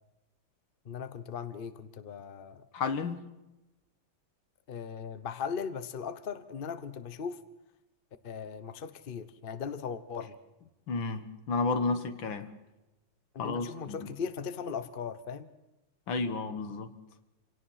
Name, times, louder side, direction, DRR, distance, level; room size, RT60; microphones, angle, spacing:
voice 1, 0.8-2.6 4.7-7.4 8.2-10.4 13.3-15.5, left 6 dB, 35° left, 1.0 m, -38 dB
voice 2, 2.7-3.3 10.9-12.5 13.4-14.1 16.1-16.9, left 4 dB, 80° left, 2.2 m, -32 dB
27.0 x 17.5 x 5.7 m
omnidirectional pair, 2.1 m